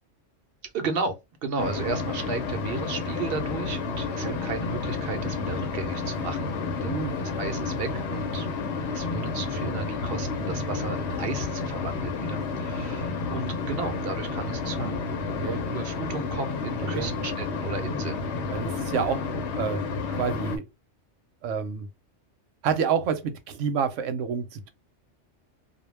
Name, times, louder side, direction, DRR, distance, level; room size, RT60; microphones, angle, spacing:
voice 1, 0.6-1.2 1.4-6.5 6.8-8.5 8.9-15.0 15.7-18.2, right 4 dB, 55° right, 0.8 m, -34 dB
sound 1, 1.6-20.6, left 4 dB, 70° left, 0.9 m, -31 dB
voice 2, 6.8-7.2 9.1-9.3 14.8-14.9 15.4-15.6 16.9-17.1 18.5-20.6 21.4-21.9 22.6-24.7, right 6 dB, 90° right, 1.0 m, -29 dB
2.3 x 2.2 x 3.2 m
omnidirectional pair, 1.3 m